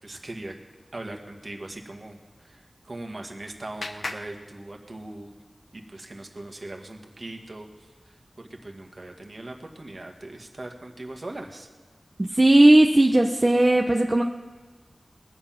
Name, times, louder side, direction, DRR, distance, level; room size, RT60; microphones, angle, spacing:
voice 1, 0.0-0.5 0.9-5.3 5.7-7.7 8.1-11.7, right 2 dB, 50° right, 3 dB, 1.9 m, -40 dB
Clapping, 2.7-5.3, left 2 dB, 75° left, 1.0 m, -41 dB
voice 2, 12.2-14.2, right 1 dB, 35° right, 2 dB, 0.9 m, -17 dB
21.0 x 7.4 x 5.9 m, 1.4 s
wide cardioid pair, 45°, 0 cm